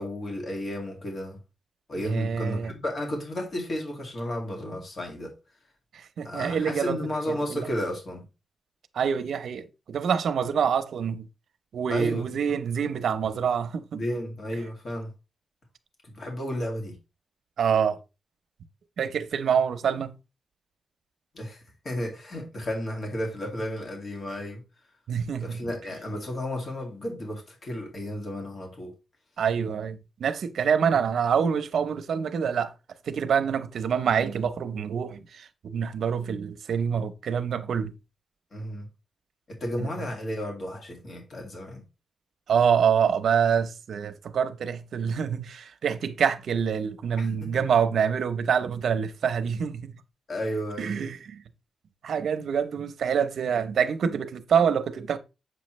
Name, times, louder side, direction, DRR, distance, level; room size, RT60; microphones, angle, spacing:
voice 1, 0.0-1.4 1.9-5.3 6.2-8.2 11.9-12.3 14.0-15.1 16.1-17.0 21.3-24.6 25.4-28.9 35.7-35.8 38.5-38.9 39.5-41.8 47.2-47.5 50.3-51.1, left 1 dB, 45° left, 2.2 m, -33 dB
voice 2, 2.0-2.7 5.9-7.0 7.3-7.7 8.9-11.3 11.7-14.0 17.6-18.0 19.0-20.1 25.1-25.7 29.4-32.7 33.1-37.9 39.8-39.9 42.5-49.9 50.8-51.4 52.0-55.2, right 7 dB, 80° right, 0.8 m, -26 dB
7.9 x 6.2 x 3.2 m
wide cardioid pair, 150°, 0 cm